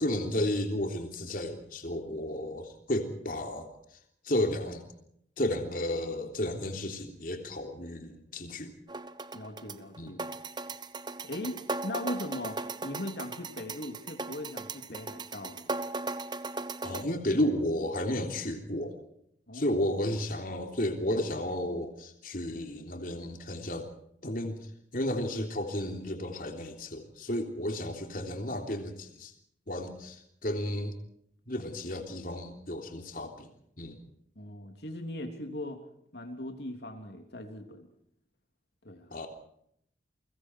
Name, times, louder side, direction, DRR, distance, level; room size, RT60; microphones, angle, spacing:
voice 1, 0.0-3.7 4.2-4.8 5.4-8.7 10.0-10.1 16.8-19.0 19.5-23.9 24.2-24.6 24.9-29.3 29.7-30.9 31.5-33.5 33.8-34.0 39.1-39.3, left 1 dB, 50° left, 4 dB, 3.4 m, -32 dB
sound 1, 8.9-17.0, right 3 dB, 25° right, 1.0 m, -38 dB
voice 2, 9.3-10.2 11.2-15.7 19.5-19.8 34.3-35.8 36.1-37.9 38.8-39.1, left 1 dB, 65° left, 4 dB, 3.2 m, -39 dB
30.0 x 24.0 x 4.7 m, 0.71 s
head